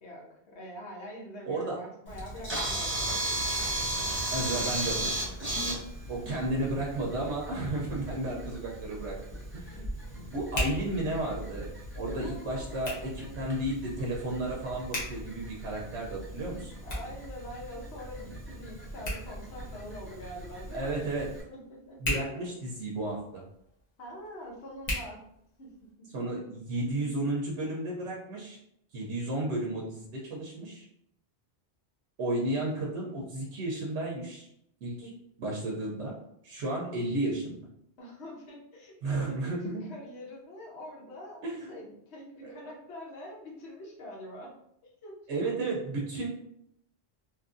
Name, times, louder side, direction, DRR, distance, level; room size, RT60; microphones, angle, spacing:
voice 1, 0.0-3.2 7.9-8.5 9.7-10.4 12.1-13.3 16.8-20.9 21.5-22.4 24.0-25.2 25.6-26.1 35.0-35.1 38.0-44.5 45.0-45.6, equal, 70° left, -2 dB, 1.1 m, -45 dB
voice 2, 1.5-1.8 4.3-5.1 6.1-9.2 9.5-9.8 10.3-11.7 11.9-16.7 20.7-21.3 22.0-23.4 26.1-28.6 28.9-30.9 32.2-34.5 34.8-35.1 35.4-36.2 36.4-37.6 39.0-39.8 41.4-41.7 42.4-42.5 45.3-46.3, right 2 dB, 85° right, -2 dB, 0.9 m, -33 dB
Camera, 2.1-21.4, right 1 dB, 10° right, 0.7 m, -37 dB
Hands, 8.3-25.9, left 1 dB, 40° left, 1.0 m, -41 dB
2.9 x 2.5 x 2.4 m, 0.74 s
omnidirectional pair, 1.2 m